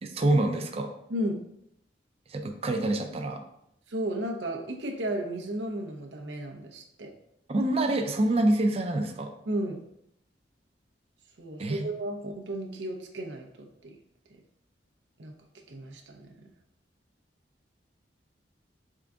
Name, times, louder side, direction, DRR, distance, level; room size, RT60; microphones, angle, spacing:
voice 1, 0.0-0.9 2.3-3.4 7.5-9.3 11.6-11.8, right 1 dB, 35° right, 4 dB, 0.5 m, -26 dB
voice 2, 3.9-7.1 9.5-9.9 11.4-13.9 15.2-15.3 15.7-16.3, right 1 dB, 85° right, 2 dB, 0.7 m, -34 dB
3.7 x 3.7 x 3.5 m, 0.74 s
head